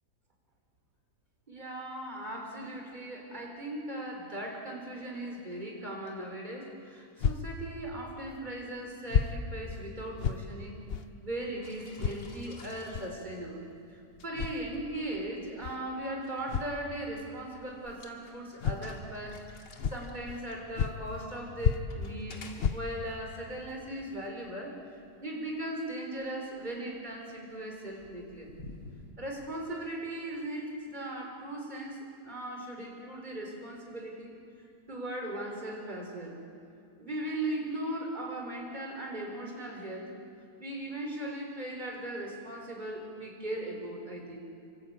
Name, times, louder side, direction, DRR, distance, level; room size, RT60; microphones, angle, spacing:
voice 1, 1.5-10.8 11.2-24.9 25.2-28.5 29.2-34.4 34.9-36.4 37.0-40.1 40.6-44.5, right 1 dB, 25° right, 1 dB, 4.0 m, -38 dB
sound 1, 7.2-7.4 8.3-8.4 9.1-9.3 9.7-9.8 10.2-10.4 10.9-11.1 12.0-12.2 12.9-13.1 14.2-14.6 15.6-15.7 16.5-16.8 17.8-18.0 18.6-18.8 19.3-19.4 19.8-20.4 20.7-21.3 21.6-22.1 22.5-23.1 23.7-23.8 24.2-24.3, left 7 dB, 50° left, 0.8 m, -31 dB
sound 2, 11.6-29.1, left 3 dB, 80° left, 2.9 m, -54 dB
26.5 x 24.5 x 8.7 m, 2.6 s
omnidirectional pair, 1.8 m